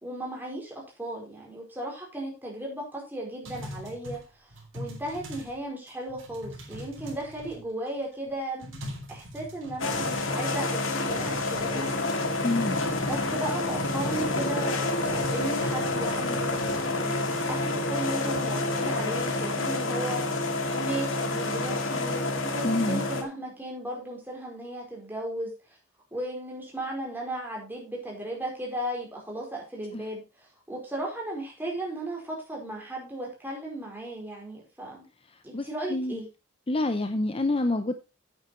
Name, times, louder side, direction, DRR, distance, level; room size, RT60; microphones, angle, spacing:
voice 1, 0.0-4.5 4.7-8.8 9.1-12.0 13.0-14.9 15.1-25.5 26.1-35.1 35.4-36.3, right 1 dB, 10° right, -2 dB, 4.6 m, -36 dB
sound 1, 3.4-5.6 5.9-7.9 8.3-8.4 8.6-10.8 11.1-16.8, equal, 75° right, 3.7 m, -43 dB
sound 2, 9.8-23.2, left 2 dB, 85° left, 2.0 m, -28 dB
voice 2, 12.4-12.9 22.6-23.0 29.9-30.0 35.5-36.2 36.7-37.9, left 2 dB, 30° left, 9 dB, 0.6 m, -27 dB
9.2 x 8.7 x 4.4 m, 0.30 s
head